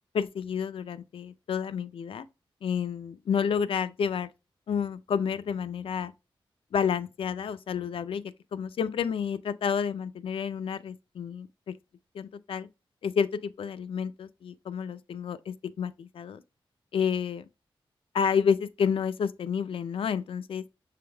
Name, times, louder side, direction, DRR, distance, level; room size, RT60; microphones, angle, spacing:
voice 1, 0.1-2.3 2.6-4.3 4.7-6.1 6.7-8.2 8.5-11.8 12.1-12.7 13.0-16.4 16.9-17.4 18.1-20.6, left 7 dB, 75° left, 0.4 m, -30 dB
6.8 x 3.4 x 2.2 m
wide cardioid pair, 175°, 9 cm